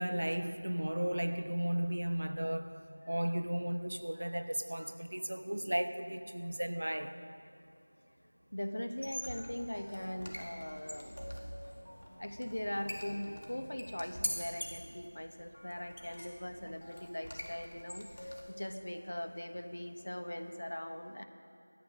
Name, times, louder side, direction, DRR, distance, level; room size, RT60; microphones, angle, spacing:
voice 1, 0.0-2.8 3.1-7.2, right 1 dB, 50° right, 0.8 m, -35 dB
voice 2, 8.5-11.3 12.1-21.2, left 1 dB, 50° left, 1.0 m, -41 dB
sound 1, 8.9-18.7, equal, 70° left, 1.9 m, -45 dB
sound 2, 9.2-14.6, equal, 5° left, 1.0 m, -58 dB
16.0 x 13.0 x 6.3 m
figure-of-eight pair, 180°, 0 cm